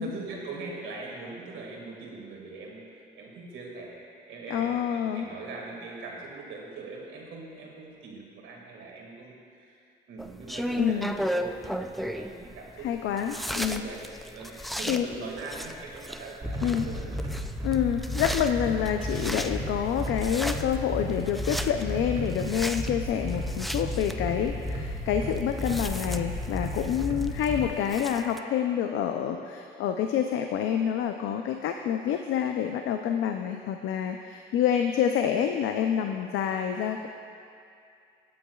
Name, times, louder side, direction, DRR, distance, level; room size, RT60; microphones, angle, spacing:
voice 1, 0.0-2.9 3.1-9.8 10.1-17.2, right 3 dB, 80° right, -2 dB, 1.9 m, -41 dB
voice 2, 4.5-5.3 10.8-11.1 12.8-13.8 14.5-15.0 16.6-16.9 17.6-37.1, left 9 dB, 85° left, 5 dB, 0.5 m, -28 dB
sound 1, 10.2-28.4, equal, ahead, 0.4 m, -36 dB
sound 2, 16.4-27.7, equal, 25° right, 1.9 m, -33 dB
17.0 x 8.6 x 2.3 m, 2.4 s
cardioid pair, 90°, 20 cm